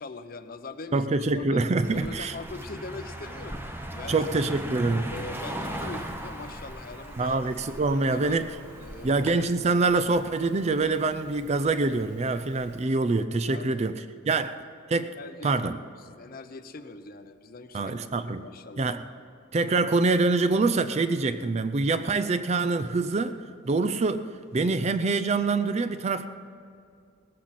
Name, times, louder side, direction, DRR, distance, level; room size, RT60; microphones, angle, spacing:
voice 1, 0.0-4.2 5.1-7.5 7.9-8.4 8.8-9.4 11.4-11.5 13.5-13.8 14.3-14.4 15.2-18.9, left 3 dB, 45° left, 10 dB, 0.6 m, -42 dB
voice 2, 0.9-2.3 4.1-5.1 7.2-8.5 9.0-14.6 14.9-15.1 15.4-15.8 17.7-18.5 18.8-19.0 19.5-23.4 23.7-24.3 24.5-26.3, right 3 dB, 30° right, 11 dB, 0.4 m, -25 dB
Car passing by, 1.8-9.3, right 1 dB, 10° right, 0.8 m, -38 dB
Rain, 5.7-12.8, equal, 55° right, 3.2 m, -53 dB
17.5 x 14.5 x 4.2 m, 2.4 s
head